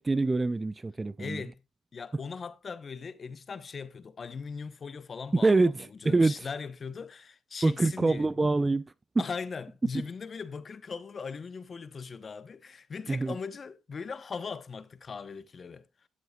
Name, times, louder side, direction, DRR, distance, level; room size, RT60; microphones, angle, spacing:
voice 1, 0.0-1.4 5.3-6.3 7.6-8.9 13.1-13.3, right 3 dB, 20° right, 0.5 m, -25 dB
voice 2, 1.2-1.6 1.9-8.3 9.2-15.8, left 5 dB, 40° left, 0.9 m, -39 dB
13.0 x 7.7 x 2.3 m
supercardioid pair, 75°, 0 cm